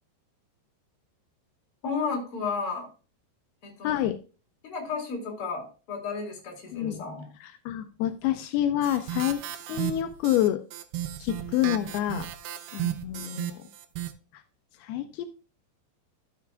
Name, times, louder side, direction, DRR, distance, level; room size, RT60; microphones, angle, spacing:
voice 1, 1.8-2.9 3.6-4.0 4.6-7.3, left 5 dB, 35° left, 1 dB, 2.8 m, -33 dB
voice 2, 3.8-4.2 6.7-7.0 7.4-9.4 9.7-10.6 11.2-12.3 12.7-13.6 14.8-15.3, left 12 dB, 90° left, 7 dB, 2.3 m, -27 dB
sound 1, 8.8-14.1, right 12 dB, 80° right, 2.4 m, -34 dB
13.0 x 6.9 x 2.2 m, 0.34 s
omnidirectional pair, 5.2 m